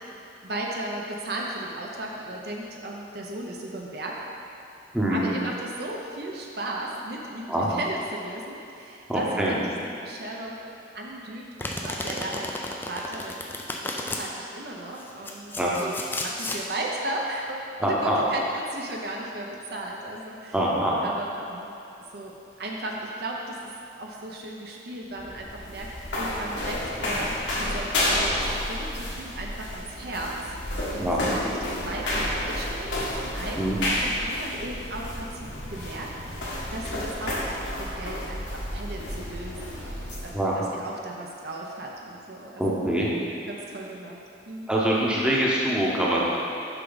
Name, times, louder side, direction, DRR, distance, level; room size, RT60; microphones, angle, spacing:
voice 1, 0.0-4.2 5.1-10.6 10.9-13.3 13.8-15.5 15.8-20.6 21.0-21.8 22.1-22.3 22.6-23.7 24.0-42.8 43.5-44.2 44.5-44.7, right 1 dB, 55° right, -1 dB, 0.7 m, -36 dB
voice 2, 4.9-5.3 7.5-7.7 9.1-9.6 15.6-15.7 17.8-18.2 20.5-21.0 31.0-31.2 33.6-33.8 40.3-40.6 42.6-43.1 44.7-46.2, right 1 dB, 5° right, -6 dB, 0.8 m, -24 dB
Domestic sounds home sounds, 11.6-14.2 15.0-16.6, left 2 dB, 10° left, 0.3 m, -33 dB
sound 1, 25.0-40.3, left 1 dB, 75° left, 1.4 m, -31 dB
6.7 x 5.9 x 4.0 m, 2.8 s
head